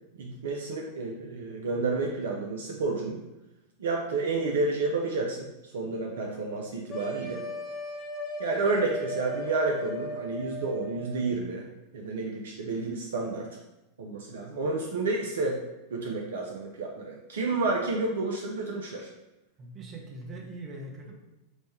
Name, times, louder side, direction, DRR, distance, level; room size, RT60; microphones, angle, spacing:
voice 1, 0.1-3.2 3.8-7.4 8.4-11.7 11.9-13.5 14.0-15.6 15.9-19.1, right 3 dB, 60° right, 0 dB, 0.4 m, -30 dB
sound 1, 6.9-11.3, equal, 30° left, 0.7 m, -37 dB
voice 2, 19.6-21.2, right 2 dB, 30° right, 0 dB, 0.7 m, -41 dB
4.1 x 2.1 x 3.2 m, 0.98 s
figure-of-eight pair, 90°, 0 cm